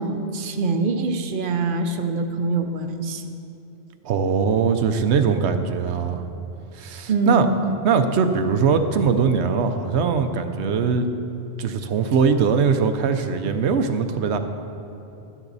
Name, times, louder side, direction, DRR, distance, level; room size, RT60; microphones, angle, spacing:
voice 1, 0.0-3.2 7.1-7.6, right 3 dB, 55° right, 7 dB, 0.8 m, -24 dB
voice 2, 4.0-6.2 6.7-7.5 7.8-11.1 11.6-14.4, right 6 dB, 85° right, 8 dB, 1.0 m, -21 dB
12.5 x 10.0 x 4.0 m, 2.9 s
omnidirectional pair, 1.1 m